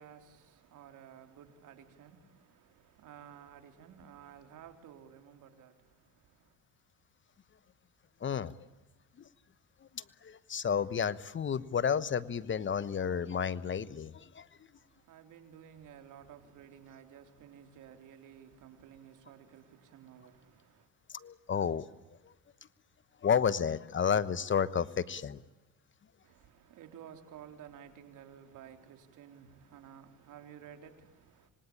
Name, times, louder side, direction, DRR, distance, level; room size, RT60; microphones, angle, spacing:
voice 1, 0.0-6.6 14.7-20.9 26.2-31.5, right 9 dB, 65° right, 3.9 m, -54 dB
voice 2, 8.2-8.5 10.0-14.5 21.1-21.8 23.2-25.4, left 7 dB, 35° left, 1.2 m, -31 dB
27.0 x 25.0 x 8.8 m
supercardioid pair, 95°, 34 cm